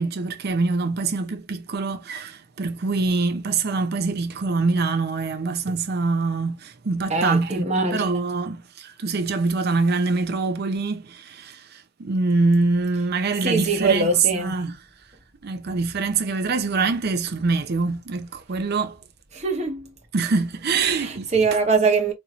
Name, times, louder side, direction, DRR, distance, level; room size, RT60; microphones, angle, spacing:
voice 1, 0.0-14.8 15.4-19.0 20.1-21.3, right 4 dB, 50° right, 0.5 m, -24 dB
voice 2, 7.1-8.1 13.4-14.6 19.3-19.9 20.7-22.1, right 4 dB, 35° right, 1.0 m, -22 dB
4.2 x 2.8 x 2.4 m
head